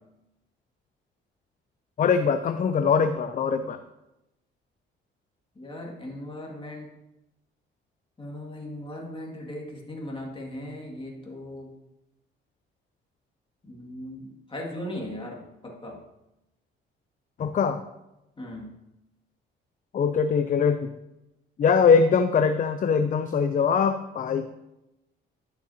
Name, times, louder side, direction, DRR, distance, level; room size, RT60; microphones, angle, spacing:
voice 1, 2.0-3.8 17.4-17.8 19.9-20.9 21.6-24.5, left 6 dB, 40° left, 9 dB, 0.5 m, -22 dB
voice 2, 5.6-6.9 8.2-11.7 13.6-16.0 18.4-18.7, left 1 dB, 25° left, -1 dB, 2.1 m, -38 dB
11.5 x 6.6 x 2.8 m, 0.92 s
cardioid pair, 90°, 20 cm